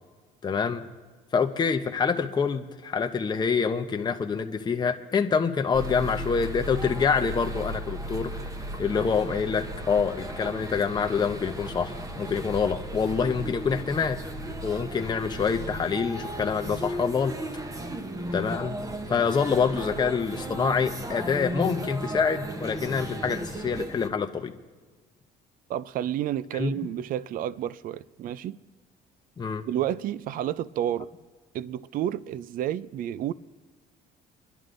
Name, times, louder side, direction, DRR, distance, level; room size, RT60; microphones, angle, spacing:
voice 1, 0.4-0.8 1.3-8.4 8.8-14.3 14.6-17.4 18.3-18.8 19.1-24.5 26.5-26.7 29.4-29.6, left 6 dB, 25° left, 0.7 m, -26 dB
sound 1, 5.7-24.1, right 1 dB, 20° right, 0.8 m, -35 dB
voice 2, 25.7-28.6 29.7-31.1 31.5-33.3, right 11 dB, 55° right, 0.4 m, -30 dB
30.0 x 11.0 x 2.6 m
cardioid pair, 110°, 17 cm